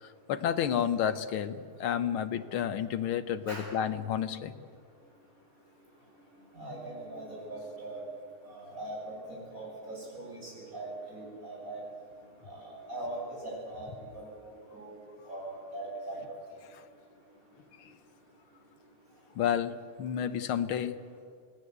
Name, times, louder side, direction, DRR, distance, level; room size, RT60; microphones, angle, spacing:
voice 1, 0.0-4.5 19.4-19.7 20.0-21.0, left 9 dB, 75° left, 11 dB, 1.9 m, -30 dB
voice 2, 6.5-8.0 8.5-11.8 12.5-13.9 14.1-14.3 14.7-15.0 15.3-16.2, right 2 dB, 40° right, -4 dB, 8.6 m, -41 dB
27.5 x 18.5 x 8.2 m, 2.1 s
omnidirectional pair, 2.4 m